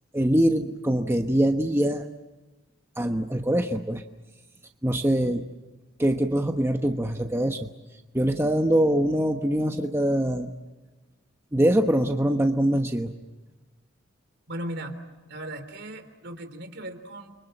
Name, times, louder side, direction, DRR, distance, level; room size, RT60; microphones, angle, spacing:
voice 1, 0.1-2.0 3.0-4.0 4.8-5.4 6.0-7.7 8.1-10.5 11.5-13.1, right 1 dB, 15° right, 4 dB, 1.1 m, -23 dB
voice 2, 14.5-15.0 15.3-17.3, right 1 dB, 60° right, 9 dB, 3.4 m, -37 dB
30.0 x 25.0 x 7.8 m, 1.1 s
head